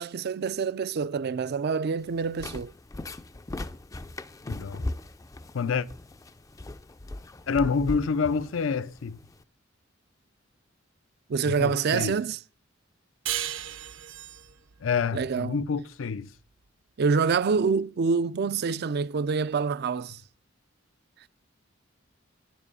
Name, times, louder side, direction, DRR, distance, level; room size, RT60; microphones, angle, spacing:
voice 1, 0.0-2.7 11.3-12.4 15.1-15.6 17.0-20.2, right 5 dB, 55° right, 0.4 m, -26 dB
sound 1, 2.0-9.4, left 2 dB, 15° left, 0.4 m, -39 dB
voice 2, 4.5-4.9 5.5-5.9 7.5-9.2 11.4-12.2 14.8-16.3, left 5 dB, 75° left, 0.5 m, -27 dB
sound 2, 13.3-16.4, right 11 dB, 75° right, 0.9 m, -36 dB
9.8 x 7.2 x 5.5 m
head